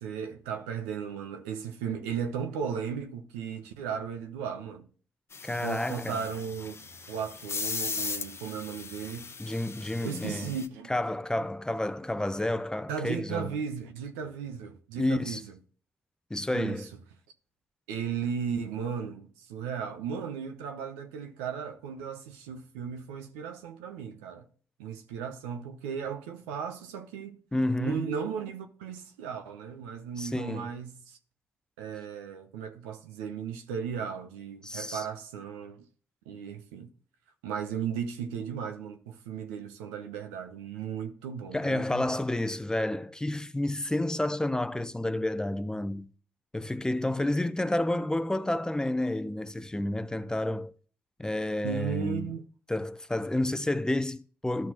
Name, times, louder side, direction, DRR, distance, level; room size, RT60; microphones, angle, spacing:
voice 1, 0.0-4.9 5.5-6.8 7.1-9.3 10.0-10.9 12.9-15.5 16.5-16.9 17.9-24.5 24.8-27.4 27.8-31.2 31.8-35.8 36.3-36.9 37.4-42.2 51.6-52.4, right 7 dB, 85° right, 0.7 m, -36 dB
sound 1, 5.3-10.7, left 5 dB, 40° left, 0.8 m, -38 dB
voice 2, 5.4-6.2 9.4-10.5 10.9-13.5 15.0-15.4 16.3-16.9 27.5-28.0 30.2-30.7 34.6-35.1 41.5-46.1 46.5-50.7 51.2-52.3 52.7-54.7, left 1 dB, 10° left, 0.6 m, -30 dB
12.5 x 6.0 x 2.9 m
hypercardioid pair, 45°, 6 cm